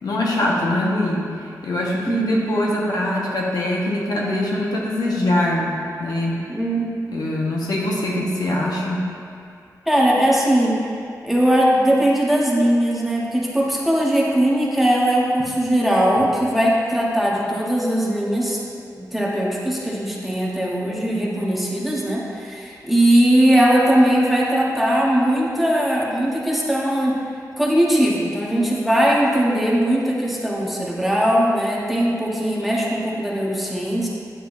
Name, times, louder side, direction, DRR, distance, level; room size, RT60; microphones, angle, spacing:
voice 1, 0.0-1.3 1.6-5.7 6.0-6.4 7.1-9.0, left 1 dB, 70° left, -3 dB, 1.2 m, -23 dB
voice 2, 2.1-2.7 6.5-6.9 9.9-10.8 11.2-18.6 19.0-27.2 27.6-34.1, right 1 dB, ahead, -5 dB, 1.1 m, -19 dB
9.5 x 7.7 x 2.6 m, 2.4 s
wide cardioid pair, 140°, 7 cm